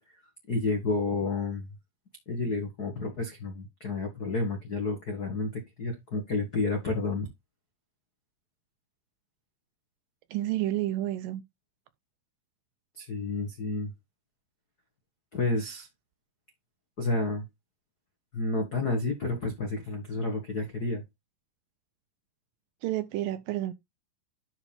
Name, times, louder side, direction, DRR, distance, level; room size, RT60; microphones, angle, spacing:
voice 1, 0.5-1.7 2.3-7.3 13.0-13.9 15.3-15.9 17.0-17.4 18.3-21.0, left 2 dB, 75° left, 0.8 m, -30 dB
voice 2, 10.3-11.4 22.8-23.7, right 14 dB, 80° right, 2.1 m, -30 dB
11.0 x 4.5 x 3.4 m
omnidirectional pair, 4.4 m